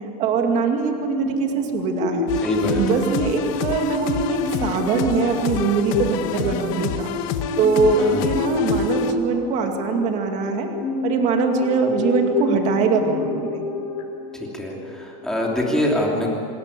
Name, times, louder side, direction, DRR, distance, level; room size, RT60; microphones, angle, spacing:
voice 1, 0.2-2.3 2.8-7.1 7.6-10.7 11.0-13.7, right 5 dB, 35° right, 3 dB, 2.4 m, -22 dB
sound 1, 1.2-15.6, left 4 dB, 70° left, 5.2 m, -29 dB
sound 2, 2.3-9.1, left 11 dB, 55° left, 1.3 m, -29 dB
voice 2, 2.4-3.0 8.0-8.4 14.3-16.3, left 1 dB, 5° left, -3 dB, 3.0 m, -25 dB
26.5 x 14.0 x 9.9 m, 2.3 s
supercardioid pair, 165°, 20 cm